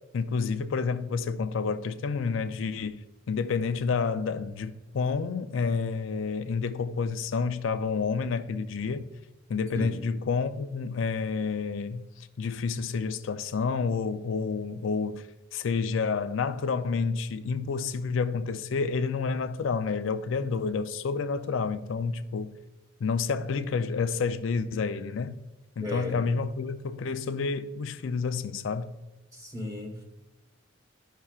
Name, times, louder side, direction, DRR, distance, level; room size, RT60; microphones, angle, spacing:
voice 1, 0.1-9.1 9.5-22.5 23.0-25.4 25.8-28.9, left 5 dB, 75° left, 0.4 m, -29 dB
voice 2, 25.8-26.2 29.3-30.0, left 1 dB, 20° right, 1.2 m, -34 dB
12.5 x 5.6 x 2.4 m
head